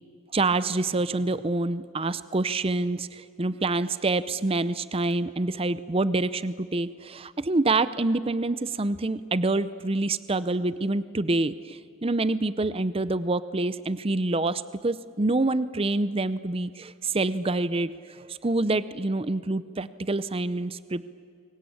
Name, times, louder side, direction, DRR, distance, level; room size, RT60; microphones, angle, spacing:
voice 1, 0.3-21.0, right 2 dB, 30° right, 15 dB, 0.6 m, -27 dB
29.5 x 23.5 x 8.7 m, 2.4 s
head